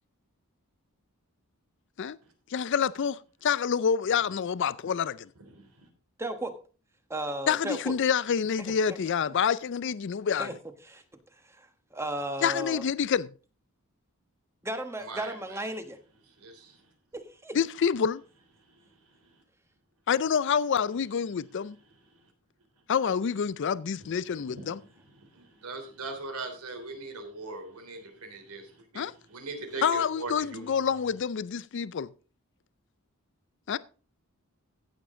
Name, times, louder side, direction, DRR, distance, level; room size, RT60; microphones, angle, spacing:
voice 1, 2.5-5.3 7.5-10.5 12.4-13.3 17.5-18.2 20.1-21.8 22.9-24.8 28.9-29.1 29.8-32.1 33.7-33.8, left 7 dB, 55° left, 0.4 m, -27 dB
voice 2, 5.5-5.9 15.0-15.6 16.4-16.8 24.0-24.7 25.2-30.6, right 3 dB, 85° right, 3.3 m, -41 dB
voice 3, 6.2-6.5 7.1-7.9 8.6-9.0 10.4-10.5 10.8-11.0 11.4-12.8 14.6-16.0 17.1-17.6, right 1 dB, 10° right, 1.2 m, -35 dB
15.5 x 7.2 x 3.7 m
head